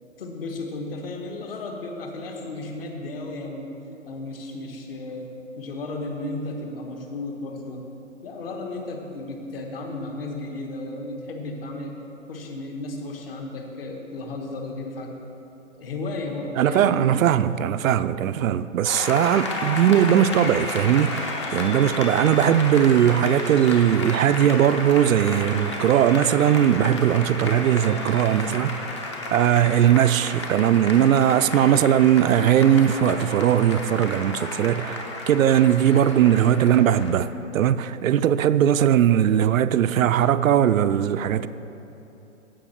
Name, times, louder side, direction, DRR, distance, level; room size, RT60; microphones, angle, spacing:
voice 1, 0.2-3.7 4.0-5.3 5.6-7.8 8.2-12.0 12.3-15.1 15.8-17.1, left 2 dB, 45° left, 1.3 m, -34 dB
voice 2, 16.6-28.8 29.3-41.5, right 10 dB, 85° right, 0.5 m, -19 dB
Applause, 18.8-37.1, left 2 dB, 20° left, 0.5 m, -32 dB
15.5 x 5.4 x 4.3 m
hypercardioid pair, 160°, 39 cm